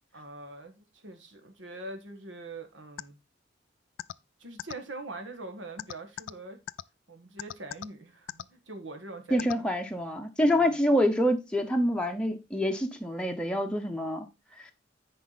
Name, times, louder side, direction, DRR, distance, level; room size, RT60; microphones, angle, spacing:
voice 1, 0.1-3.2 4.4-6.6 7.1-9.6 10.4-10.7, right 2 dB, 80° right, 1.5 m, -43 dB
sound 1, 3.0-3.1 4.0-4.1 4.6-4.7 5.8-6.3 6.7-6.8 7.4-7.9 8.3-8.4 9.4-9.5, left 10 dB, 85° left, 0.3 m, -36 dB
voice 2, 9.3-14.3 14.6-14.7, equal, 5° left, 0.7 m, -26 dB
9.7 x 4.7 x 4.0 m
head